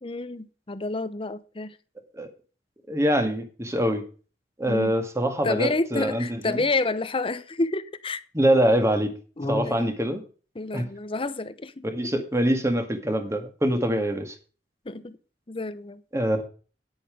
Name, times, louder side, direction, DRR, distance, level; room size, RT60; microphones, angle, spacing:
voice 1, 0.0-1.8 4.7-4.9 5.4-8.2 9.4-9.9 10.5-12.1 14.8-15.2 15.5-16.0, left 2 dB, 30° left, 0.8 m, -29 dB
voice 2, 2.9-4.0 4.6-6.6 8.3-9.1 9.5-10.2 10.7-10.9 11.8-14.4 16.1-16.4, equal, 15° right, 1.8 m, -24 dB
9.9 x 8.5 x 5.0 m
head